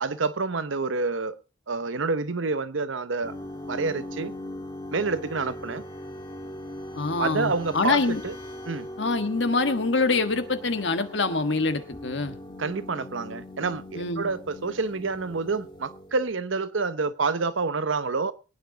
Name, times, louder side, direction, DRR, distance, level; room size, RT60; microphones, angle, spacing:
voice 1, 0.0-1.4 1.7-3.3 3.7-4.3 4.9-5.8 7.2-8.3 8.7-8.9 12.6-18.3, right 4 dB, 75° right, 0.8 m, -28 dB
sound 1, 3.2-16.4, left 1 dB, 25° left, 2.1 m, -40 dB
voice 2, 6.9-8.2 9.0-12.4 13.9-14.3, left 3 dB, 65° left, 1.4 m, -25 dB
22.5 x 9.3 x 3.9 m
head